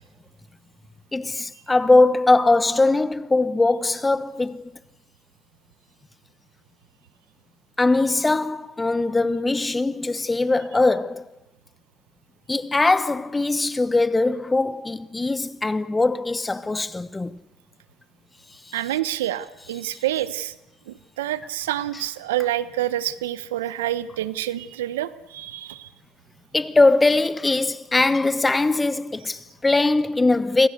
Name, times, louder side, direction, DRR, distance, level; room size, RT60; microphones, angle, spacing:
voice 1, 1.1-4.7 7.8-11.2 12.5-17.4 26.5-30.7, left 2 dB, 20° left, 1.2 m, -21 dB
voice 2, 18.7-20.5 20.9-25.9, right 13 dB, 90° right, 1.1 m, -27 dB
29.5 x 25.5 x 6.7 m
hypercardioid pair, 70°, 0 cm